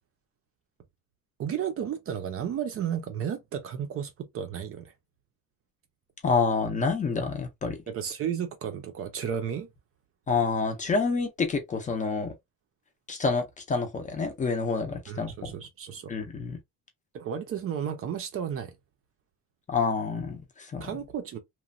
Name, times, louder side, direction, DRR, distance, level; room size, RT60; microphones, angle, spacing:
voice 1, 1.4-4.9 7.9-9.7 15.1-16.1 17.1-18.8 20.8-21.4, right 8 dB, 40° right, 0.5 m, -33 dB
voice 2, 6.2-7.8 10.3-12.3 13.1-15.5 16.1-16.6 19.7-20.9, left 4 dB, 20° left, 0.5 m, -28 dB
3.0 x 2.1 x 2.5 m
cardioid pair, 175°, 34 cm